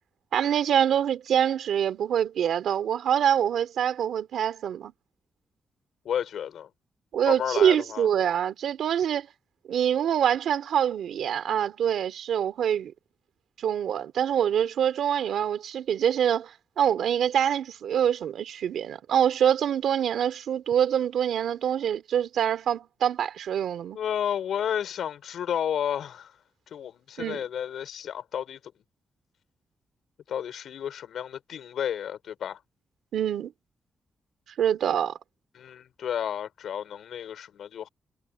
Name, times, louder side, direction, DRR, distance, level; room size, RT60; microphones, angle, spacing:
voice 1, 0.3-4.9 7.1-9.3 9.7-12.9 13.6-24.0 27.2-27.4 33.1-33.5 34.6-35.1, right 9 dB, 90° right, 2.7 m, -25 dB
voice 2, 6.1-6.7 7.3-8.1 23.9-26.3 26.7-28.6 30.3-32.6 35.5-37.9, left 9 dB, 80° left, 5.2 m, -32 dB
wide cardioid pair, 150°, 0 cm